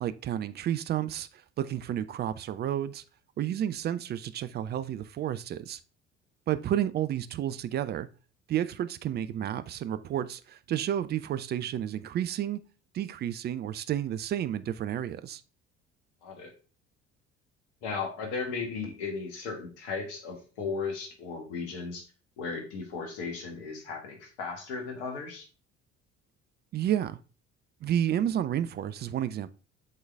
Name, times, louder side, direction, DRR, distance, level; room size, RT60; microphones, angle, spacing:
voice 1, 0.0-3.0 3.4-5.8 6.5-8.1 8.5-12.6 12.9-15.4 26.7-27.2 27.8-29.5, right 11 dB, 30° right, 0.4 m, -31 dB
voice 2, 16.2-16.5 17.8-22.0 22.4-25.5, left 4 dB, 65° left, 1.7 m, -36 dB
7.4 x 3.9 x 3.4 m
figure-of-eight pair, 55°, 36 cm